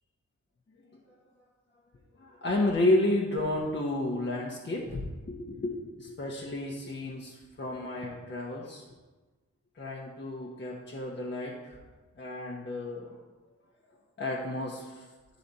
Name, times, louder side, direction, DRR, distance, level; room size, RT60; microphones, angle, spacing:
voice 1, 2.2-8.9 9.8-11.8 12.2-13.2 14.2-15.0, left 1 dB, 40° left, -3 dB, 1.1 m, -31 dB
10.5 x 4.1 x 4.1 m, 1.2 s
cardioid pair, 75°, 30 cm